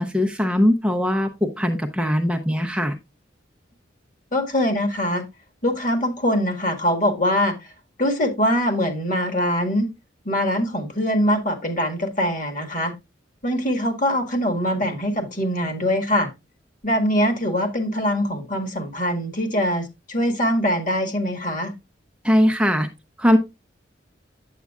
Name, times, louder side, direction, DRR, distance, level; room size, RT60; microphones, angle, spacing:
voice 1, 0.0-3.0 22.2-22.9 23.2-23.4, equal, 5° right, 0.6 m, -20 dB
voice 2, 4.3-5.2 5.6-7.6 8.0-9.9 10.3-12.9 13.4-16.3 16.8-21.7, equal, 45° left, 1.8 m, -23 dB
8.3 x 8.2 x 2.3 m
head